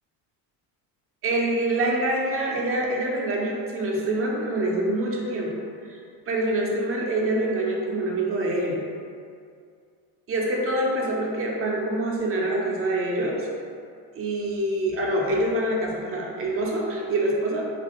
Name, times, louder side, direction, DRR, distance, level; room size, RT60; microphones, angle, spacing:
voice 1, 1.2-6.0 6.3-8.8 10.3-13.5 14.1-17.7, right 1 dB, 30° right, -2 dB, 0.4 m, -25 dB
2.5 x 2.4 x 2.8 m, 2.3 s
supercardioid pair, 100°, 49 cm